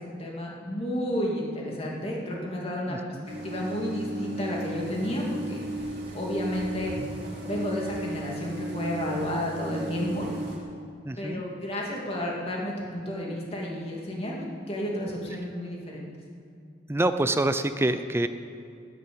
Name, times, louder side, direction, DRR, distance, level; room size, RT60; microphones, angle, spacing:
voice 1, 0.0-3.0 3.4-5.6 6.1-7.0 7.4-10.3 11.2-16.1, left 1 dB, 30° left, -2 dB, 2.6 m, -31 dB
voice 2, 2.9-3.3 11.0-11.4 16.9-18.3, right 1 dB, 15° right, 10 dB, 0.5 m, -26 dB
sound 1, 3.2-10.6, right 1 dB, 55° right, 3.0 m, -35 dB
sound 2, 5.6-8.2 8.8-8.9, right 1 dB, 35° right, 1.2 m, -46 dB
10.5 x 9.8 x 8.7 m, 2.4 s
head